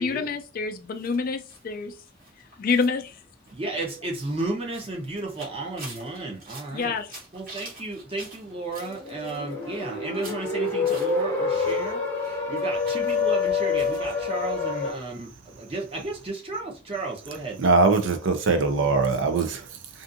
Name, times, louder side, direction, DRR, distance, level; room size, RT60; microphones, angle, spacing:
voice 1, 0.0-1.9 2.6-3.2 6.7-7.2, left 4 dB, 45° left, 0.3 m, -27 dB
sound 1, 0.9-11.8 12.0-14.1 14.5-14.6 14.9-15.0, right 2 dB, 50° right, 1.2 m, -47 dB
voice 2, 3.5-6.9 7.3-17.6, right 2 dB, 30° right, 0.8 m, -33 dB
sound 2, 8.7-14.9, left 4 dB, 10° left, 0.7 m, -27 dB
voice 3, 17.6-20.0, right 3 dB, 70° right, 0.5 m, -22 dB
2.5 x 2.5 x 2.5 m
head